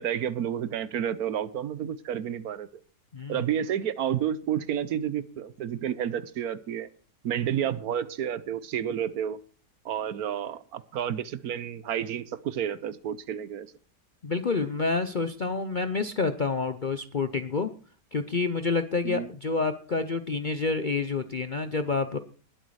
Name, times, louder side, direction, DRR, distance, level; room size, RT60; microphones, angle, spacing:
voice 1, 0.0-2.7 3.3-6.9 7.2-9.4 9.8-13.7 19.0-19.3, right 9 dB, 70° right, 16 dB, 1.2 m, -30 dB
voice 2, 3.1-3.4 14.2-17.7 18.1-22.2, left 4 dB, 45° left, 10 dB, 0.6 m, -28 dB
20.0 x 8.3 x 4.8 m, 0.41 s
omnidirectional pair, 1.8 m